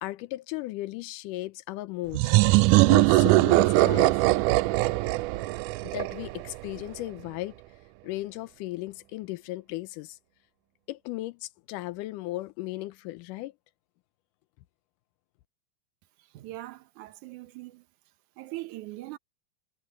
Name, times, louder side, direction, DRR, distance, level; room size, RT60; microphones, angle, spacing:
voice 1, 0.0-2.4 2.8-4.1 5.9-7.6 8.0-10.2 10.9-13.5, left 17 dB, 80° left, 2.0 m, -36 dB
sound 1, 2.1-6.7, right 20 dB, 90° right, 1.8 m, -21 dB
voice 2, 16.2-17.8 18.4-19.2, right 17 dB, 70° right, 2.1 m, -41 dB
omnidirectional pair, 4.1 m